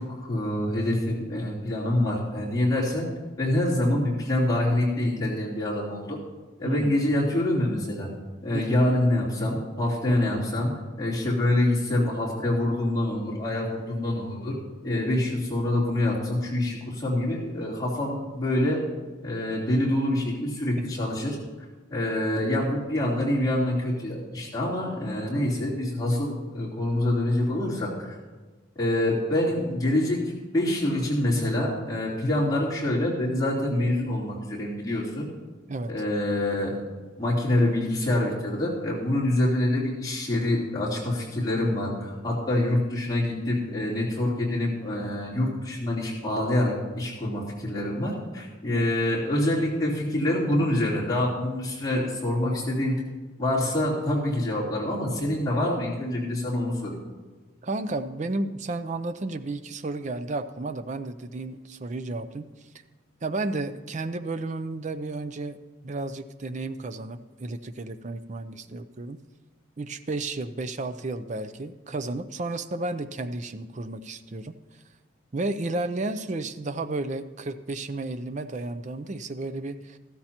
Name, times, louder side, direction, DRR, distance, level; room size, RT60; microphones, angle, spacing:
voice 1, 0.0-3.1 3.4-6.2 6.6-8.1 8.4-10.7 11.0-14.6 14.8-18.8 19.2-21.4 21.9-28.1 28.7-30.2 30.5-35.3 35.9-36.8 37.2-53.0 53.4-57.0, left 1 dB, 20° left, -7 dB, 3.2 m, -26 dB
voice 2, 57.6-62.5 63.2-65.6 65.8-69.2 69.8-74.6 75.3-80.0, right 2 dB, 35° right, 11 dB, 0.5 m, -32 dB
14.5 x 13.0 x 2.9 m, 1.3 s
head